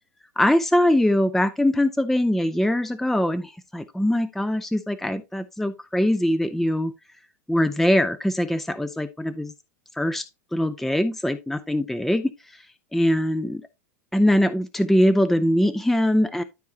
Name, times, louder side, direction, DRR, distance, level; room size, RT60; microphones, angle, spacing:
voice 1, 0.4-6.9 7.5-9.5 9.9-10.3 10.5-12.6 12.9-13.6 14.1-16.4, left 1 dB, 5° left, 0.5 m, -22 dB
12.5 x 4.6 x 2.7 m
figure-of-eight pair, 85°, 8 cm